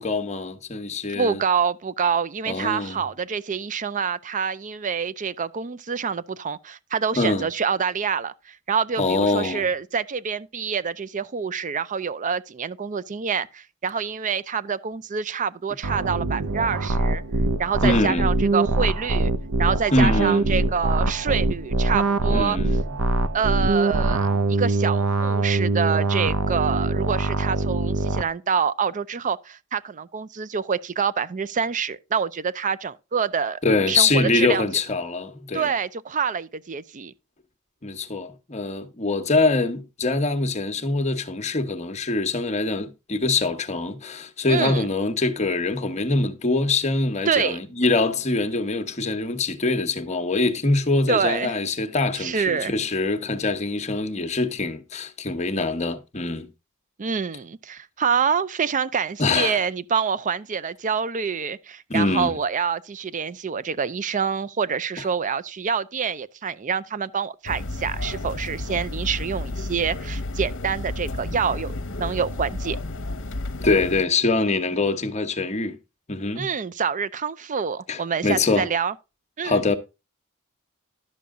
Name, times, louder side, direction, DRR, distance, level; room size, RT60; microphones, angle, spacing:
voice 1, 0.0-1.4 2.5-3.0 7.2-7.5 9.0-9.7 17.8-18.3 19.9-20.5 22.2-22.8 33.6-35.7 37.8-56.5 59.2-59.6 61.9-62.3 73.6-75.8 76.1-76.5 77.9-78.7 79.4-79.8, left 3 dB, 30° left, 1.0 m, -24 dB
voice 2, 1.1-17.2 17.6-19.3 19.6-22.6 23.3-33.6 33.9-34.6 35.5-37.1 44.5-44.9 47.3-47.6 51.1-51.5 52.2-52.7 57.0-72.8 76.3-78.9 79.4-79.6, right 6 dB, 35° right, 0.5 m, -26 dB
sound 1, 15.8-28.2, right 2 dB, 75° right, 0.7 m, -23 dB
sound 2, 67.4-74.0, left 2 dB, 60° left, 0.9 m, -31 dB
11.5 x 7.0 x 3.6 m
head